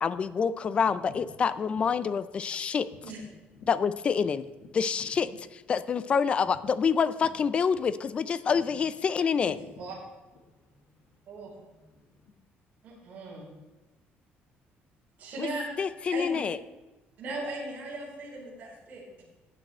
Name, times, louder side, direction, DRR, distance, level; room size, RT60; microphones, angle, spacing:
voice 1, 0.0-2.9 3.7-4.4 4.7-5.3 5.7-9.6 15.4-15.5 15.8-16.6, left 6 dB, 30° left, 15 dB, 0.4 m, -27 dB
voice 2, 2.9-3.7 4.6-4.7 7.2-7.3 8.4-8.6 9.4-9.9 10.4-12.3, left 4 dB, 70° left, -1 dB, 1.9 m, -52 dB
voice 3, 12.8-13.4 15.2-15.6 16.1-16.4 17.2-19.2, right 2 dB, 40° right, -6 dB, 4.6 m, -38 dB
15.0 x 9.1 x 4.3 m, 1.1 s
cardioid pair, 170°, 4 cm